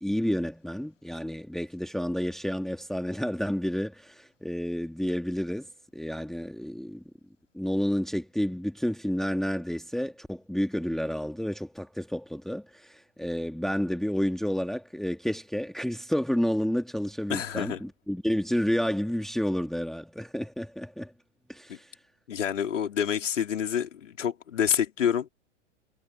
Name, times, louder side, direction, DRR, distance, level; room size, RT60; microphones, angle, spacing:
voice 1, 0.0-7.0 7.5-21.1 21.5-22.0, equal, ahead, 2.2 m, -30 dB
voice 2, 17.3-17.8 21.7-21.8 22.3-25.3, left 8 dB, 75° left, 3.7 m, -28 dB
figure-of-eight pair, 105°, 38 cm